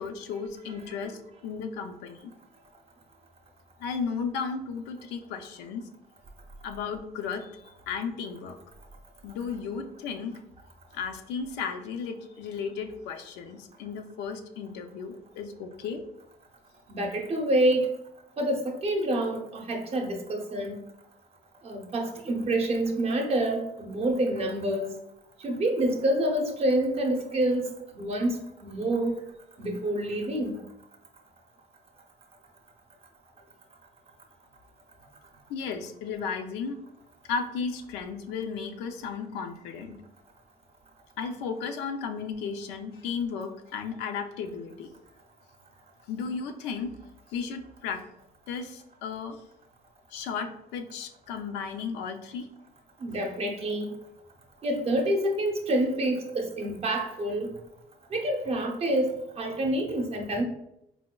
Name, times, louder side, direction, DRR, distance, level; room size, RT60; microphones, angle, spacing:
voice 1, 0.0-2.3 3.8-5.8 6.6-8.6 9.2-10.4 10.9-16.0 35.5-36.8 37.3-40.0 41.2-44.9 46.1-46.9 47.3-48.0 48.5-49.4 50.1-52.5, left 5 dB, 90° left, 6 dB, 0.4 m, -34 dB
voice 2, 16.9-18.0 18.4-20.8 21.6-24.9 25.4-29.1 29.6-30.6 53.0-54.0 54.6-57.5 58.1-60.4, right 1 dB, 35° right, 4 dB, 0.6 m, -27 dB
4.1 x 2.2 x 2.2 m, 0.81 s
cardioid pair, 110°, 17 cm